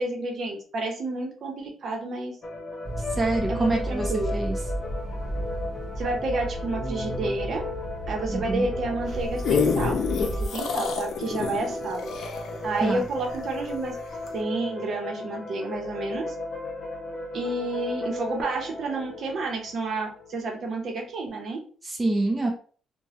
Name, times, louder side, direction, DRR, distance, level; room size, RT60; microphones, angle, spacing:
voice 1, 0.0-2.4 3.5-4.4 6.0-7.6 8.1-12.1 12.6-14.0 14.3-16.3 17.3-21.6, right 2 dB, 60° right, 2 dB, 0.8 m, -30 dB
sound 1, 2.4-20.5, left 2 dB, 40° left, 1.0 m, -36 dB
sound 2, 2.8-10.5, right 1 dB, 10° left, 1.2 m, -33 dB
voice 2, 3.1-4.6 8.3-8.7 12.8-13.0 21.8-22.5, right 2 dB, 20° right, 1 dB, 0.7 m, -26 dB
sound 3, 9.1-13.7 14.3-14.4, left 6 dB, 70° left, 0.6 m, -27 dB
3.0 x 2.2 x 2.8 m, 0.43 s
cardioid pair, 90°, 0 cm